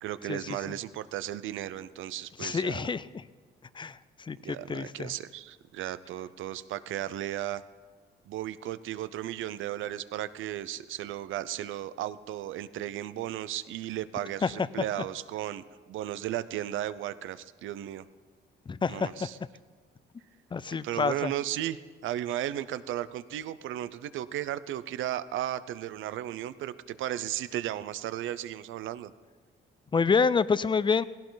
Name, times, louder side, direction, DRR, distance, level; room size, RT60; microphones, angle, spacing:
voice 1, 0.0-2.8 4.4-7.6 8.3-18.0 18.9-19.4 20.7-29.1, right 12 dB, 80° right, 14 dB, 0.7 m, -35 dB
voice 2, 2.4-3.0 3.8-4.0 4.3-5.1 14.4-14.5 18.7-19.3 20.5-21.3 29.9-31.0, left 5 dB, 25° left, 17 dB, 0.5 m, -27 dB
17.5 x 16.5 x 4.0 m, 1.4 s
cardioid pair, 90°, 20 cm